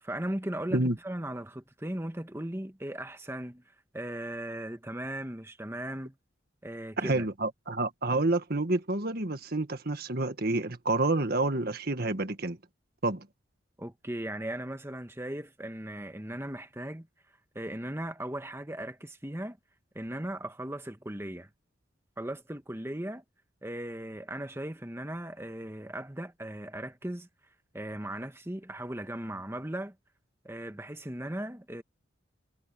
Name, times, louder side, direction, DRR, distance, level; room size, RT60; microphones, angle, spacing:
voice 1, 0.0-3.6 3.9-6.1 6.6-7.3 13.8-17.1 17.5-19.6 19.9-21.5 22.2-23.2 23.6-27.3 27.7-30.0 30.4-31.8, right 1 dB, 15° right, 1.3 m, -37 dB
voice 2, 7.0-12.6 13.0-13.2, right 2 dB, 50° right, 1.7 m, -28 dB
head